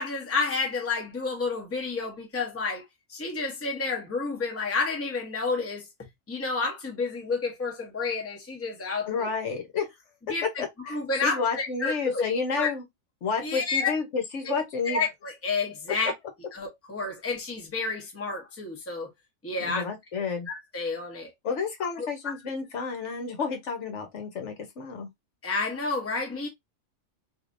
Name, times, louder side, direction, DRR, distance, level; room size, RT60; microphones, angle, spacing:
voice 1, 0.0-5.9 6.3-9.3 10.3-12.2 12.5-12.7 13.4-13.9 14.4-16.1 16.5-19.1 19.4-19.8 20.5-21.3 22.0-22.1 22.8-22.9 25.4-26.5, left 4 dB, 15° left, 0.8 m, -30 dB
voice 2, 9.1-9.9 10.6-12.8 13.2-15.0 19.6-20.5 21.4-25.1, left 5 dB, 65° left, 1.1 m, -31 dB
3.1 x 2.8 x 2.5 m
omnidirectional pair, 1.4 m